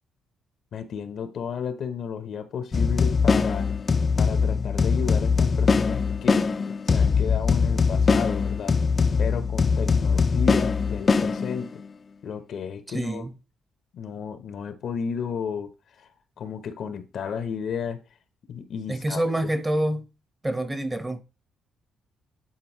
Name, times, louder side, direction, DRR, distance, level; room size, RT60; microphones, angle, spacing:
voice 1, 0.7-3.7 4.2-6.5 6.9-8.8 9.2-11.8 12.2-13.2 13.9-15.7 16.0-16.1 16.4-18.0 18.5-19.2, left 7 dB, 65° left, 1.0 m, -33 dB
sound 1, 2.7-11.8, left 5 dB, 40° left, 0.6 m, -22 dB
voice 2, 12.9-13.3 18.9-20.1 20.4-21.2, right 1 dB, 20° right, 1.2 m, -26 dB
10.5 x 4.3 x 3.1 m
supercardioid pair, 55°, 0 cm